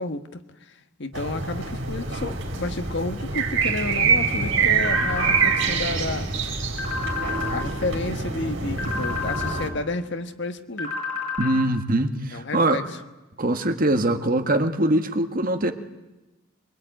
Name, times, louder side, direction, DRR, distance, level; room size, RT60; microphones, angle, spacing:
voice 1, 0.0-6.3 7.5-10.9 12.3-13.0, left 2 dB, 55° left, 8 dB, 1.4 m, -31 dB
sound 1, 1.1-9.7, right 5 dB, 60° right, 4.3 m, -25 dB
sound 2, 4.8-5.6 6.8-7.6 8.8-9.6 10.8-11.6, left 5 dB, 70° left, 6.9 m, -30 dB
voice 2, 11.4-12.8 13.4-15.7, right 1 dB, 40° right, 7 dB, 1.5 m, -22 dB
24.0 x 22.5 x 9.1 m, 1.1 s
head